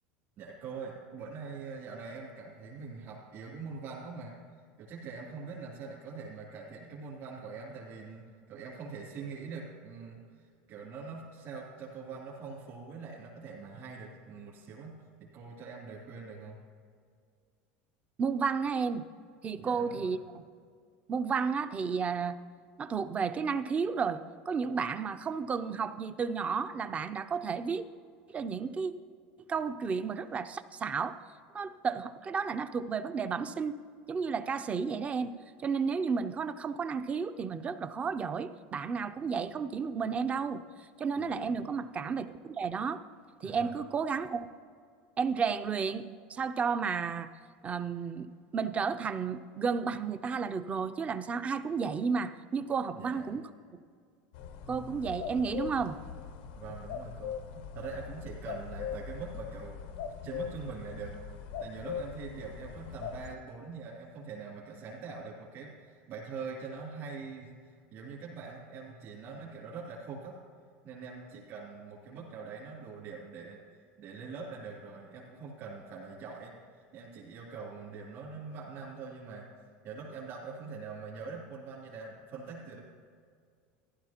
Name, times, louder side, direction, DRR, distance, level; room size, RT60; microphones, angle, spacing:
voice 1, 0.4-4.3 4.8-16.6 19.6-20.2 41.2-41.6 43.4-43.8 52.9-53.4 56.5-57.3 57.7-59.8 60.2-61.1 61.6-70.4 70.8-73.6 74.0-76.5 76.9-79.5 79.8-82.8, right 5 dB, 50° right, -6 dB, 2.9 m, -43 dB
voice 2, 18.2-19.0 19.4-20.5 21.1-22.4 22.8-27.8 28.3-28.9 29.5-31.2 31.5-33.7 34.1-35.3 35.6-40.6 41.0-43.0 43.4-44.4 45.2-47.3 47.6-48.3 48.5-53.4 54.7-56.0, right 5 dB, 25° right, 12 dB, 0.5 m, -32 dB
sound 1, 54.3-63.4, left 7 dB, 80° left, 0.7 m, -41 dB
15.0 x 11.5 x 2.9 m, 2.1 s
supercardioid pair, 120°, 5 cm